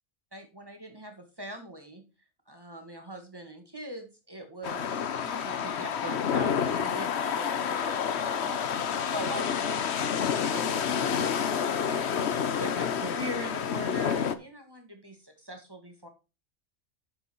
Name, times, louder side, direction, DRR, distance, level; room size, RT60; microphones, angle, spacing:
voice 1, 0.3-2.0 2.5-8.7 9.1-16.1, equal, 20° right, 5 dB, 2.1 m, -42 dB
sound 1, 4.6-14.4, left 7 dB, 70° left, 1.1 m, -29 dB
9.6 x 7.3 x 4.5 m, 0.30 s
omnidirectional pair, 1.2 m